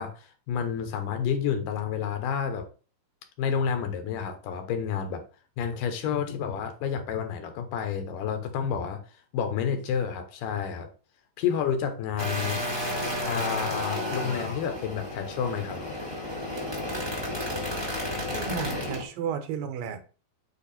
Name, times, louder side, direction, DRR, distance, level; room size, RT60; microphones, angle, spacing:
voice 1, 0.0-2.7 3.4-5.3 5.6-9.0 9.3-10.9 11.4-12.6 13.3-16.0, left 7 dB, 75° left, 2.5 m, -30 dB
sound 1, 12.2-19.0, left 1 dB, 15° right, 0.9 m, -32 dB
voice 2, 18.3-20.0, right 7 dB, 85° right, 2.6 m, -33 dB
8.4 x 3.1 x 4.1 m
omnidirectional pair, 3.9 m